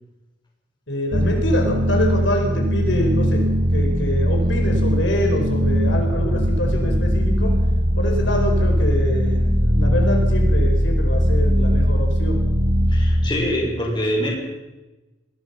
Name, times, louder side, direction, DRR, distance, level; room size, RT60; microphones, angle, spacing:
voice 1, 0.9-3.4 3.7-7.5 8.0-12.4 13.3-13.6, left 1 dB, 75° left, 2 dB, 4.8 m, -26 dB
sound 1, 1.1-13.3, equal, 50° right, 4.0 m, -19 dB
voice 2, 12.9-14.3, equal, 25° left, -1 dB, 5.7 m, -24 dB
22.5 x 20.5 x 5.7 m, 1.1 s
head